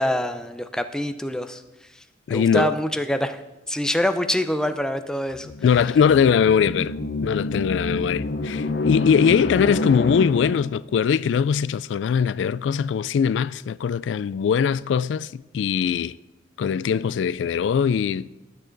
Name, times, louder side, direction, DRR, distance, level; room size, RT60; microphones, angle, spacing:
voice 1, 0.0-1.6 2.3-3.4 3.7-5.5, equal, 5° left, 0.6 m, -25 dB
voice 2, 2.3-2.7 5.6-6.9 7.2-16.2 16.6-18.3, left 7 dB, 85° left, 0.3 m, -21 dB
sound 1, 5.3-10.8, left 2 dB, 60° left, 0.7 m, -28 dB
20.0 x 8.6 x 3.9 m
head